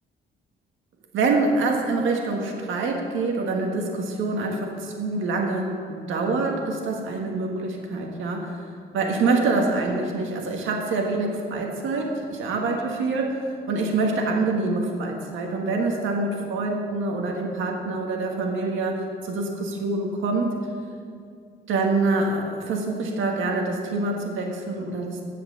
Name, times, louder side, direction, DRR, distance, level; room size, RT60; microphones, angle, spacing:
voice 1, 1.1-8.6 8.9-13.4 13.7-20.5 21.7-25.2, right 3 dB, 80° right, 1 dB, 1.6 m, -25 dB
10.0 x 7.7 x 7.2 m, 2.3 s
cardioid pair, 90°, 20 cm